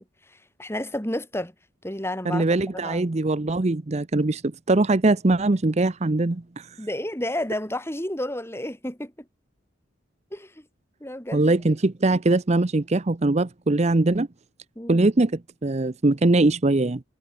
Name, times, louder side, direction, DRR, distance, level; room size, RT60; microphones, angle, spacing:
voice 1, 0.0-1.5 1.8-2.4 2.8-3.1 6.8-9.1 10.3-10.6 11.0-11.5 14.7-15.1, left 1 dB, 15° left, 4.9 m, -31 dB
voice 2, 2.3-4.4 4.7-6.7 11.3-14.3 14.9-17.0, right 2 dB, 35° right, 0.7 m, -21 dB
head